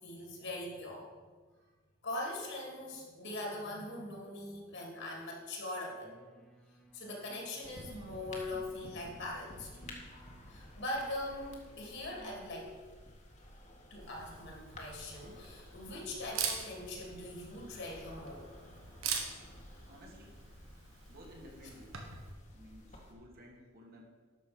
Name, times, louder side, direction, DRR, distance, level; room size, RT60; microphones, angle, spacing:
voice 1, 0.0-1.1 2.0-6.1 6.9-9.7 10.5-12.7 13.9-18.5, left 1 dB, 60° left, -1 dB, 2.9 m, -41 dB
sound 1, 6.0-12.5, right 3 dB, 5° left, 1.4 m, -61 dB
sound 2, 7.6-23.1, left 1 dB, 35° left, 1.8 m, -53 dB
Camera, 14.0-22.3, right 6 dB, 85° right, 1.5 m, -43 dB
voice 2, 19.8-20.4 21.1-22.0 22.5-24.0, equal, 50° right, -1 dB, 2.3 m, -55 dB
11.5 x 6.8 x 5.2 m, 1.4 s
head